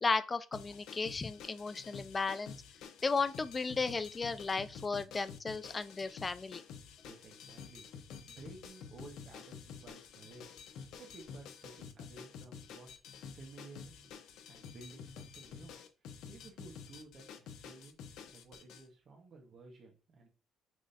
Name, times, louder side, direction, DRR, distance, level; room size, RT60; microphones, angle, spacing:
voice 1, 0.0-2.5 3.0-6.6, left 4 dB, 25° left, 0.3 m, -34 dB
sound 1, 0.5-18.8, left 6 dB, 80° left, 0.7 m, -50 dB
voice 2, 7.0-7.9 8.2-10.6 11.0-13.0 13.3-15.7 16.3-17.9 18.3-20.3, right 3 dB, 50° right, 1.4 m, -54 dB
6.1 x 3.1 x 2.7 m
cardioid pair, 120°, 0 cm